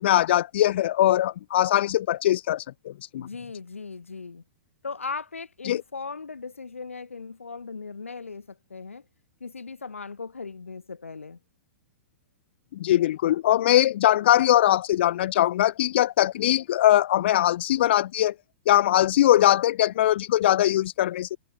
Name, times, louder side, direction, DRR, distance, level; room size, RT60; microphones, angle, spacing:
voice 1, 0.0-3.3 5.6-5.8 12.8-18.3 18.7-21.4, left 13 dB, 55° left, 0.5 m, -21 dB
voice 2, 3.1-4.4 4.8-9.0 9.4-11.4, left 4 dB, 80° left, 3.4 m, -38 dB
figure-of-eight pair, 105°, 7 cm